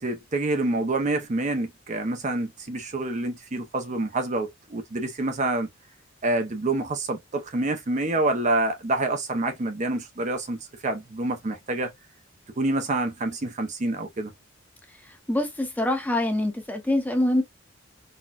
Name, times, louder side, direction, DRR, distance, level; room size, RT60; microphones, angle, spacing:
voice 1, 0.0-5.7 6.2-11.9 12.6-14.3, right 2 dB, 35° right, 0.6 m, -27 dB
voice 2, 15.3-17.4, left 1 dB, 10° left, 0.8 m, -24 dB
4.2 x 2.2 x 2.3 m
head